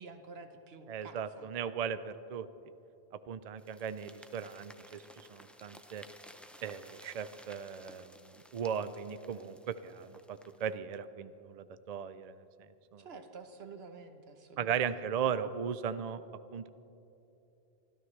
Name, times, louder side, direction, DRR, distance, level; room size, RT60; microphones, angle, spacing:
voice 1, 0.0-1.5 13.0-15.0, right 4 dB, 75° right, 7 dB, 1.3 m, -50 dB
voice 2, 0.9-2.5 3.3-6.0 6.6-8.1 8.5-12.4 12.9-13.0 14.6-16.2 16.5-16.7, right 7 dB, 55° right, 13 dB, 0.5 m, -37 dB
sound 1, 3.6-10.8, equal, ahead, 0.4 m, -56 dB
24.5 x 13.5 x 3.2 m, 2.9 s
omnidirectional pair, 1.1 m